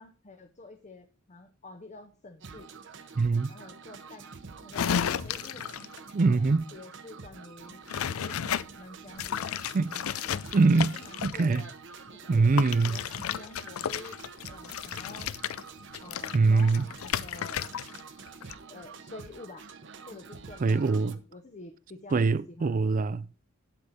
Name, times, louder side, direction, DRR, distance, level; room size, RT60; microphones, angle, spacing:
voice 1, 0.0-2.7 3.5-4.3 4.6-5.6 6.2-7.9 8.2-9.6 10.8-11.7 12.1-12.5 12.8-14.2 14.5-15.4 16.0-17.6 18.7-19.7 20.1-22.9, left 2 dB, 35° left, 0.7 m, -48 dB
sound 1, 2.4-21.2, right 5 dB, 60° right, 0.9 m, -47 dB
voice 2, 3.2-3.5 6.1-6.7 9.7-9.9 10.5-11.6 12.3-13.0 16.3-16.9 20.6-21.2 22.1-23.3, right 3 dB, 40° right, 0.4 m, -23 dB
sound 2, 4.7-6.0 7.9-8.7 9.1-11.6 12.6-18.0 18.3-18.5, left 8 dB, 80° left, 0.4 m, -33 dB
8.6 x 8.2 x 4.1 m
head